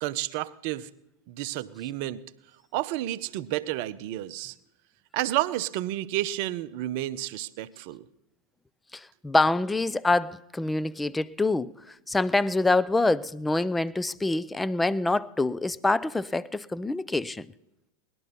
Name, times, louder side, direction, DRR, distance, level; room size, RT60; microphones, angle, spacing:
voice 1, 0.0-0.9 1.3-2.2 2.7-4.5 5.1-8.1, right 14 dB, 45° right, 0.6 m, -31 dB
voice 2, 9.2-11.7 12.1-17.5, left 2 dB, 10° left, 0.4 m, -25 dB
19.5 x 11.5 x 4.1 m
figure-of-eight pair, 90°, 0 cm